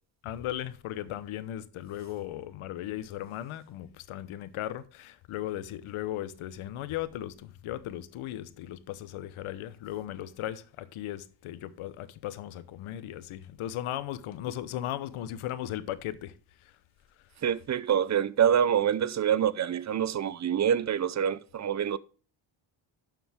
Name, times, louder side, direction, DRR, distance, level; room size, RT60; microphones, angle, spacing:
voice 1, 0.2-16.3, left 12 dB, 85° left, 1.0 m, -37 dB
voice 2, 17.4-22.0, right 9 dB, 35° right, 0.5 m, -26 dB
11.5 x 7.2 x 3.5 m
cardioid pair, 105°, 48 cm